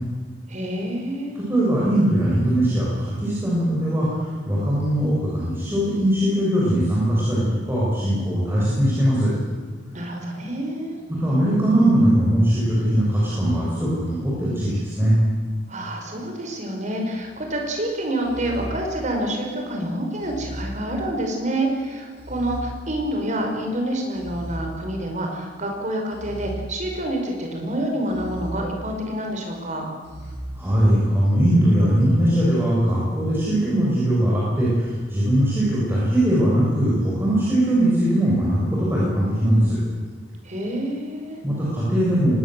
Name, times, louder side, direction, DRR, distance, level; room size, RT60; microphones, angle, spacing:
voice 1, 0.5-1.4 9.9-11.0 15.7-29.9 40.4-41.4, right 1 dB, 45° right, 2 dB, 5.6 m, -27 dB
voice 2, 1.4-9.3 11.1-15.2 30.6-39.8 41.4-42.4, right 1 dB, 15° right, -7 dB, 7.0 m, -20 dB
sound 1, 17.2-17.6 18.2-19.5 20.2-21.5 22.2-23.5 24.1-25.4 26.1-27.4 28.1-29.4 30.0-30.4, right 1 dB, 85° right, 5.8 m, -37 dB
23.5 x 20.0 x 7.9 m, 1.5 s
head